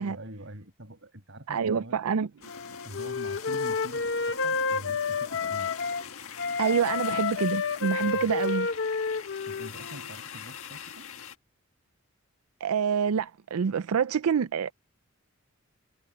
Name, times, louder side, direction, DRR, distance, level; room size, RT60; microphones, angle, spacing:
voice 1, 0.0-2.0 2.8-5.7 8.1-8.3 9.5-11.1, right 1 dB, 60° right, 5.8 m, -45 dB
voice 2, 1.5-2.3 6.6-8.7 12.6-14.7, right 6 dB, 90° right, 0.4 m, -27 dB
sound 1, 2.4-11.4, left 7 dB, 80° left, 1.6 m, -43 dB
Wind instrument woodwind instrument, 2.5-6.0 6.4-10.1, left 4 dB, 60° left, 1.2 m, -30 dB
head